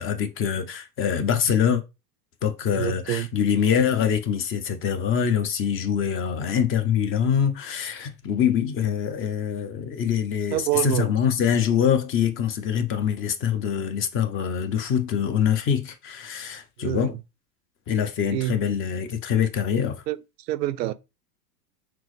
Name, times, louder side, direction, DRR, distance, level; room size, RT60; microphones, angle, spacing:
voice 1, 0.0-1.8 2.4-17.1 17.9-20.0, left 8 dB, 25° left, 0.6 m, -24 dB
voice 2, 2.7-3.3 10.5-11.1 16.8-17.2 18.3-18.6 20.1-20.2 20.5-20.9, right 14 dB, 90° right, 0.6 m, -26 dB
5.9 x 2.0 x 3.1 m
hypercardioid pair, 115°, 48 cm